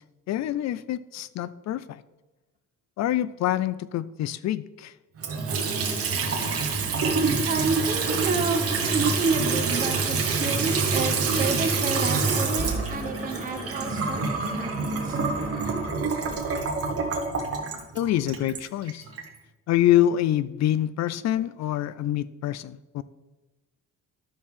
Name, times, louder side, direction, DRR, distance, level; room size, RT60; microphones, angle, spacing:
voice 1, 0.3-2.0 3.0-4.9 17.9-19.0 19.7-23.0, left 12 dB, 65° left, 17 dB, 0.5 m, -26 dB
Water tap faucet / Sink (filling or washing) / Trickle dribble, 5.2-19.3, right 4 dB, 50° right, 1.6 m, -26 dB
sound 1, 6.4-11.6, right 4 dB, 70° right, 1.2 m, -42 dB
voice 2, 7.5-15.2, right 4 dB, 25° right, 3 dB, 1.0 m, -30 dB
sound 2, 7.6-15.9, equal, 45° left, 2.9 m, -39 dB
11.5 x 6.4 x 3.7 m, 1.1 s
cardioid pair, 125°, 29 cm